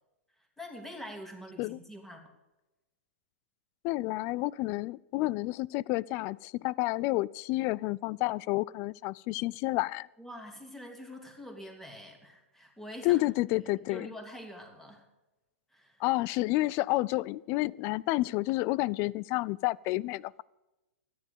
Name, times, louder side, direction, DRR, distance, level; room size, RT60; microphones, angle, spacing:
voice 1, 0.3-2.3 10.2-13.2 13.6-15.1 15.7-16.0, equal, 5° left, 3 dB, 2.8 m, -45 dB
voice 2, 3.8-10.1 13.0-14.1 16.0-20.4, left 19 dB, 35° left, 24 dB, 0.3 m, -30 dB
13.5 x 10.5 x 6.7 m, 1.0 s
figure-of-eight pair, 105°, 7 cm